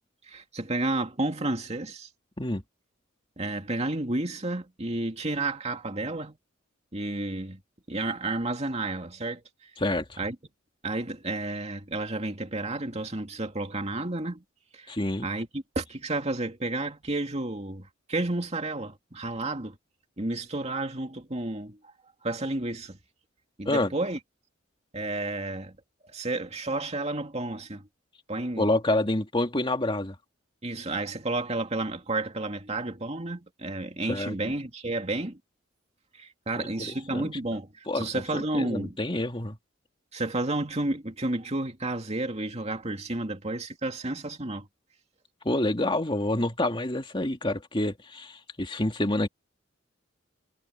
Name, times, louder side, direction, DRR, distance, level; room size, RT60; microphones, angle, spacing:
voice 1, 0.2-2.1 3.4-6.4 6.9-7.6 7.9-9.7 10.2-10.4 10.8-14.4 14.7-14.9 15.2-19.8 20.2-21.8 22.2-23.0 23.6-24.2 24.9-25.7 26.0-27.8 28.3-28.7 30.6-35.4 36.1-39.0 40.1-44.7, right 2 dB, 30° right, 2.4 m, -31 dB
voice 2, 9.8-10.2 14.9-15.3 23.6-23.9 28.6-30.2 34.1-34.5 36.6-37.3 37.9-39.6 45.4-49.3, left 1 dB, 25° left, 2.7 m, -28 dB
head